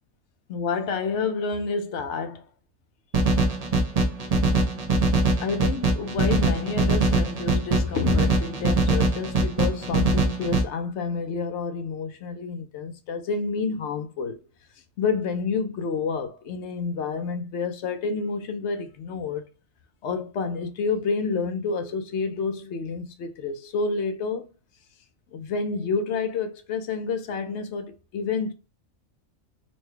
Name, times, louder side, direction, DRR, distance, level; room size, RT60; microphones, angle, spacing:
voice 1, 0.5-2.5 5.4-14.4 15.0-19.5 20.0-24.5 25.3-28.5, left 5 dB, 65° left, 0.9 m, -29 dB
sound 1, 3.1-10.6, right 2 dB, 45° right, 0.5 m, -22 dB
4.1 x 2.2 x 3.1 m
omnidirectional pair, 1.4 m